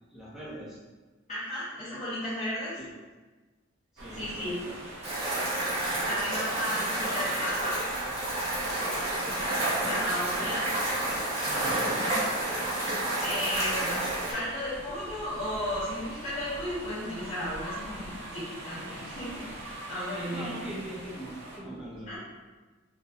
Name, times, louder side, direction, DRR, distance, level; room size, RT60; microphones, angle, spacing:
voice 1, 0.1-0.8 2.8-2.9 3.9-4.8 9.5-11.2 11.6-12.2 20.3-22.2, right 1 dB, ahead, -7 dB, 0.6 m, -42 dB
voice 2, 1.3-2.7 4.1-4.5 6.0-7.8 9.9-10.6 11.9-12.2 13.2-13.9 14.3-19.4 19.9-20.6 22.1-22.2, equal, 35° left, -13 dB, 1.0 m, -34 dB
sound 1, 4.0-21.6, right 1 dB, 55° right, 0.6 m, -43 dB
sound 2, 5.0-14.3, right 1 dB, 30° right, 0.9 m, -30 dB
3.9 x 2.2 x 2.8 m, 1.3 s
head